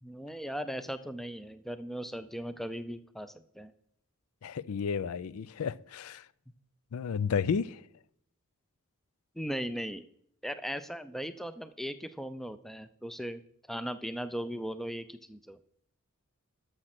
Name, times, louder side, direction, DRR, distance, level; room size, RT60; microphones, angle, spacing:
voice 1, 0.0-3.7 9.4-10.0 10.4-13.4 13.7-15.6, equal, ahead, 0.4 m, -38 dB
voice 2, 4.4-6.2 6.9-7.8, left 6 dB, 75° left, 0.4 m, -32 dB
12.5 x 6.5 x 5.9 m
head